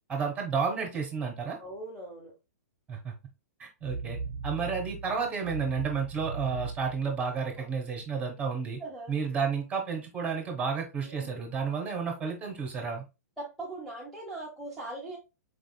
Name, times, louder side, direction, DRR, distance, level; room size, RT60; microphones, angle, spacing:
voice 1, 0.1-1.6 2.9-3.1 3.6-8.8 9.1-13.0, right 5 dB, 15° right, 1.5 m, -31 dB
voice 2, 1.6-2.3 7.6-7.7 8.8-9.1 11.0-11.5 13.4-15.2, right 2 dB, ahead, 1.1 m, -40 dB
sound 1, 3.8-7.8, right 4 dB, 85° right, 0.5 m, -39 dB
4.7 x 3.5 x 2.3 m
figure-of-eight pair, 110°, 9 cm